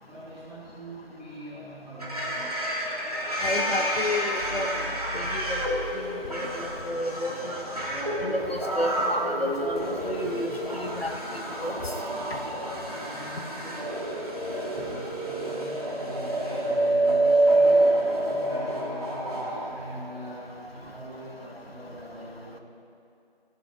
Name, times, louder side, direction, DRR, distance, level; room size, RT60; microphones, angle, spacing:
voice 1, 0.0-2.8 12.9-14.1 14.9-17.9 18.2-22.6, equal, ahead, -27 dB, 2.4 m, -42 dB
sound 1, 2.0-19.7, right 1 dB, 40° right, 2.1 m, -28 dB
voice 2, 3.4-4.7 5.1-5.6 6.3-7.6 8.2-11.7, left 1 dB, 85° left, 4 dB, 1.4 m, -31 dB
sound 2, 4.3-7.2, left 1 dB, 70° left, 4.2 m, -41 dB
29.0 x 12.5 x 2.5 m, 2.6 s
figure-of-eight pair, 175°, 29 cm